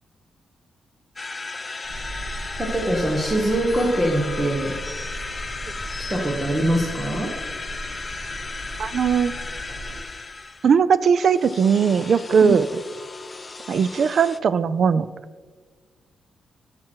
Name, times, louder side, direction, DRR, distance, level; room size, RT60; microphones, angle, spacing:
sound 1, 1.2-10.8 11.2-14.4, left 3 dB, 25° left, 0.4 m, -35 dB
sound 2, 1.8-10.0, equal, 75° right, 2.7 m, -37 dB
voice 1, 2.6-4.7 6.0-7.3 12.4-12.5, right 1 dB, 15° right, 0 dB, 1.1 m, -23 dB
voice 2, 8.8-9.3 10.6-12.6 13.7-15.1, right 6 dB, 50° right, 16 dB, 0.3 m, -19 dB
12.0 x 6.1 x 4.5 m, 1.5 s
wide cardioid pair, 145°, 0 cm